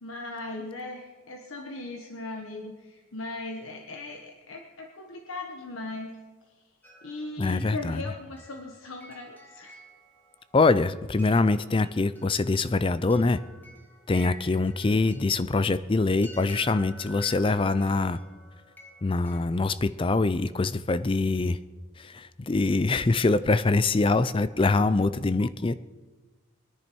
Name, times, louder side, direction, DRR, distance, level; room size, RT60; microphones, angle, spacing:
voice 1, 0.0-6.2 6.5-6.6 7.0-9.8, left 2 dB, 80° left, 2 dB, 1.2 m, -38 dB
sound 1, 6.8-19.4, equal, 10° left, 1.4 m, -51 dB
voice 2, 7.4-8.0 10.5-13.4 14.1-18.2 19.0-21.6 22.0-25.7, left 3 dB, 25° left, 14 dB, 0.4 m, -24 dB
22.0 x 10.5 x 4.6 m, 1.3 s
head